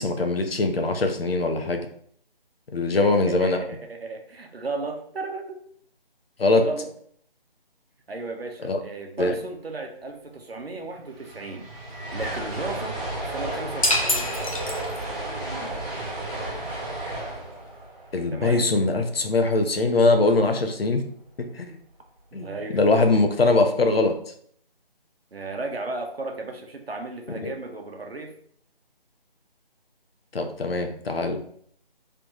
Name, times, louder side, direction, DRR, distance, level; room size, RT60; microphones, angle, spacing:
voice 1, 0.0-1.9 2.7-3.6 6.4-6.6 8.6-8.8 9.2-9.3 18.1-21.0 21.4-21.8 22.3-24.1 27.4-27.5 30.3-31.4, left 3 dB, 75° left, 5 dB, 0.8 m, -22 dB
voice 2, 3.0-5.7 6.6-6.9 8.1-13.0 13.2-14.3 18.3-18.7 22.3-22.8 23.1-23.2 25.3-28.3, right 3 dB, 75° right, 3 dB, 1.0 m, -35 dB
Fast train passing L-R, 10.7-10.8 10.9-19.2, right 1 dB, 40° right, 1.7 m, -33 dB
sound 1, 13.8-15.3, left 1 dB, 35° left, 0.5 m, -26 dB
3.4 x 2.9 x 3.8 m, 0.63 s
figure-of-eight pair, 160°, 30 cm